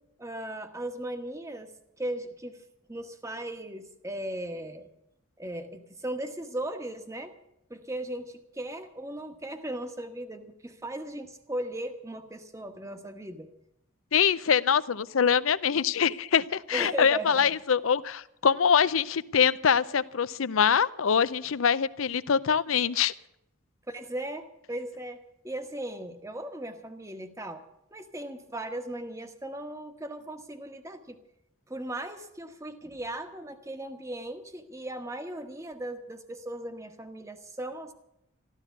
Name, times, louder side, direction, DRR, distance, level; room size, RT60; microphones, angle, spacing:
voice 1, 0.2-1.7 2.0-2.6 2.9-4.9 5.4-7.3 7.7-13.5 16.7-17.5 23.9-25.2 25.4-27.6 27.9-31.2 31.7-37.9, right 1 dB, 15° right, 7 dB, 1.1 m, -37 dB
voice 2, 14.1-23.1, left 7 dB, 80° left, 17 dB, 0.6 m, -24 dB
14.0 x 13.0 x 7.1 m, 0.82 s
head